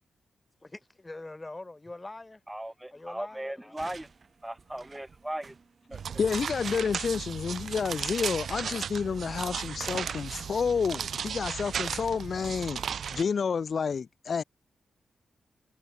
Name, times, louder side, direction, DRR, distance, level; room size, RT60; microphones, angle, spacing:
voice 1, 0.6-2.4 2.9-3.8, left 2 dB, 20° left, 5.8 m, -43 dB
voice 2, 2.5-4.1 4.4-5.5 5.9-6.2, right 1 dB, 10° right, 1.5 m, -38 dB
sound 1, 3.8-9.0, right 4 dB, 45° right, 7.9 m, -55 dB
sound 2, 5.9-13.2, right 7 dB, 75° right, 1.0 m, -35 dB
voice 3, 6.2-14.4, left 6 dB, 60° left, 1.3 m, -30 dB
cardioid pair, 80°, 0 cm